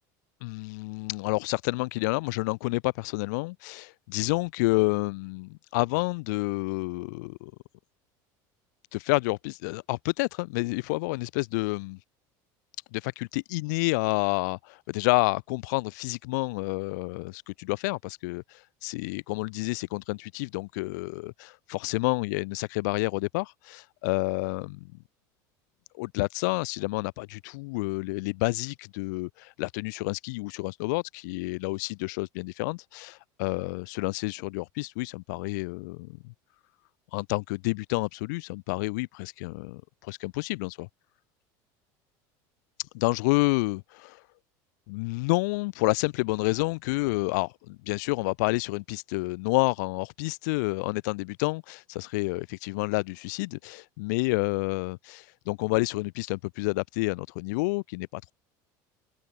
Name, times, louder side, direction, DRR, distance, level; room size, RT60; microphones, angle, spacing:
voice 1, 0.4-7.5 8.9-12.0 12.9-24.8 26.0-36.2 37.1-40.9 42.9-44.2 44.9-58.3, left 26 dB, 85° left, 0.4 m, -29 dB
open air
supercardioid pair, 140°, 10 cm